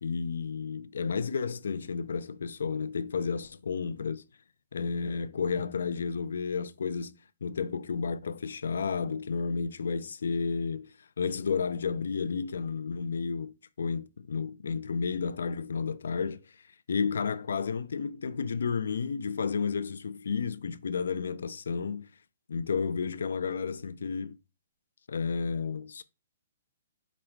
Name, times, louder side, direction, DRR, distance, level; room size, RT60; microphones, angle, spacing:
voice 1, 0.0-4.2 4.7-16.4 16.9-22.1 22.5-24.4 25.1-26.0, left 5 dB, 85° left, 0.4 m, -32 dB
5.0 x 2.1 x 4.4 m
hypercardioid pair, 170°, 0 cm